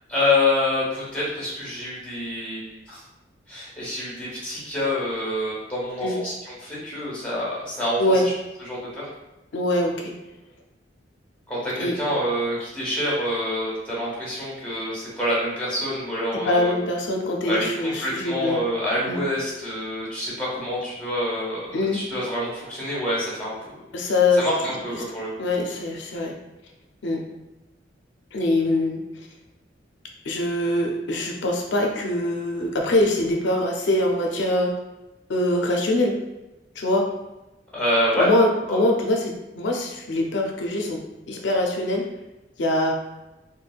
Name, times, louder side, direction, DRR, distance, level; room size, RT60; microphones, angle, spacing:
voice 1, 0.1-3.0 3.5-8.3 8.6-9.1 11.5-16.8 17.5-23.8 24.4-25.4 37.7-38.3 38.7-38.8, left 1 dB, 5° left, -8 dB, 1.0 m, -27 dB
voice 2, 9.5-10.1 11.8-12.0 16.3-18.6 19.0-19.2 21.7-22.0 23.9-24.4 25.4-26.3 27.0-27.2 28.3-29.0 30.3-34.7 35.3-36.1 36.8-37.1 38.2-41.0 41.3-42.0 42.6-42.9, left 1 dB, 75° left, 1 dB, 0.5 m, -23 dB
3.3 x 2.1 x 2.3 m, 1.0 s
head